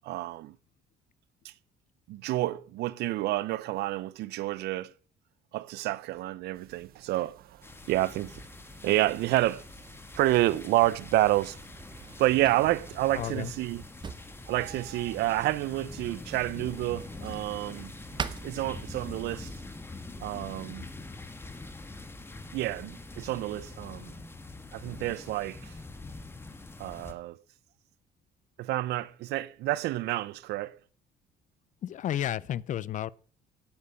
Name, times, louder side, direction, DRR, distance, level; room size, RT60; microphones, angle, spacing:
voice 1, 0.0-0.6 1.4-1.5 2.1-4.9 5.5-7.6 7.9-8.4 8.8-9.6 10.2-11.6 12.2-13.8 14.5-17.9 18.4-19.5 20.2-20.9 22.5-24.1 24.7-25.7 26.8-27.4 28.6-30.8, right 16 dB, 75° right, 0.6 m, -29 dB
sound 1, 6.5-19.6, right 11 dB, 60° right, 1.1 m, -56 dB
sound 2, 7.6-27.1, left 2 dB, 15° left, 1.2 m, -44 dB
Drawer open or close, 11.7-19.3, right 5 dB, 25° right, 0.7 m, -44 dB
voice 2, 13.1-13.5 20.5-20.6 31.8-33.1, left 11 dB, 50° left, 0.5 m, -32 dB
9.6 x 8.7 x 5.6 m
cardioid pair, 110°, 17 cm